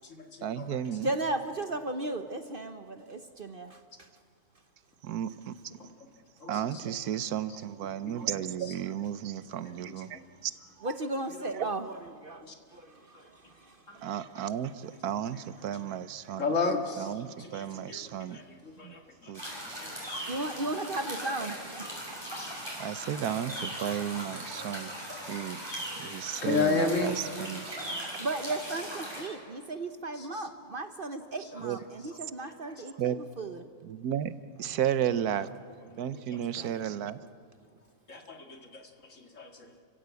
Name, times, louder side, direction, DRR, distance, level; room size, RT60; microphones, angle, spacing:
voice 1, 0.4-1.1 5.0-5.5 6.5-10.5 10.8-10.9 14.0-16.4 17.0-18.4 18.8-18.9 19.3-19.4 22.7-24.9 25.3-25.6 26.0-27.8 31.6-31.8 33.0-33.2 33.8-34.3 34.6-35.5 36.0-37.2, right 10 dB, 85° right, 14 dB, 1.3 m, -33 dB
voice 2, 1.0-3.8 10.8-11.9 13.6-13.7 20.3-21.9 28.2-33.6 36.6-36.7, right 2 dB, 40° right, 8 dB, 1.0 m, -35 dB
voice 3, 16.4-17.1 17.4-19.3 26.4-27.1 30.2-30.4 32.4-32.5 36.6-36.7 38.1-38.4 39.4-39.5, left 4 dB, 55° left, 4 dB, 2.3 m, -31 dB
sound 1, 19.3-29.3, equal, 15° right, 6.1 m, -39 dB
30.0 x 16.0 x 8.3 m, 2.1 s
omnidirectional pair, 1.6 m